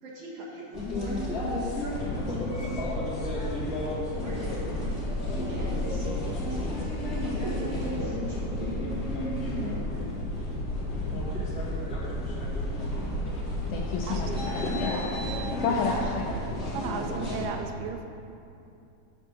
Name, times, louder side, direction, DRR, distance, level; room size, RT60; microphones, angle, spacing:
voice 1, 0.0-2.9 4.1-4.9 5.3-6.7 7.4-9.1, right 1 dB, 60° right, -6 dB, 2.4 m, -43 dB
sound 1, 0.7-17.5, left 1 dB, 30° left, 1.9 m, -31 dB
voice 2, 13.7-15.0 15.6-16.3, left 5 dB, 90° left, 0 dB, 1.9 m, -30 dB
voice 3, 16.7-18.0, right 6 dB, 80° right, 5 dB, 2.4 m, -35 dB
9.8 x 4.5 x 6.6 m, 2.6 s
omnidirectional pair, 4.4 m